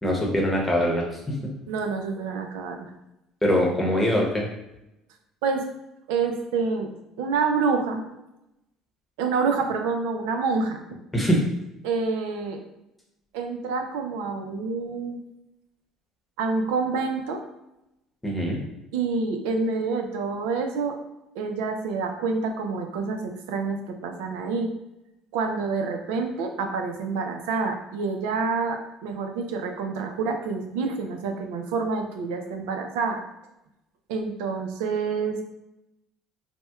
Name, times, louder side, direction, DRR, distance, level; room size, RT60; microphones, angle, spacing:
voice 1, 0.0-1.4 3.4-4.5 11.1-11.4 18.2-18.6, equal, 10° left, -2 dB, 0.8 m, -23 dB
voice 2, 1.7-2.9 5.4-5.7 6.1-6.9 7.2-8.0 9.2-10.8 11.8-12.6 13.3-15.2 16.4-17.4 18.9-21.0 21.4-24.7 25.3-33.2 34.1-35.4, right 4 dB, 90° right, 5 dB, 0.4 m, -27 dB
4.2 x 2.1 x 2.3 m, 0.91 s
cardioid pair, 110°, 0 cm